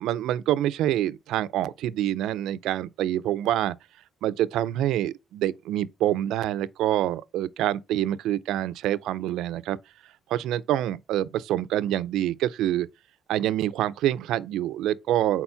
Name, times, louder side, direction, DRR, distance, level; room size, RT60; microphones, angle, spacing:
voice 1, 0.0-3.8 4.2-9.8 10.3-12.9 13.3-15.4, right 12 dB, 90° right, 0.3 m, -26 dB
4.4 x 4.0 x 5.6 m
cardioid pair, 90°, 0 cm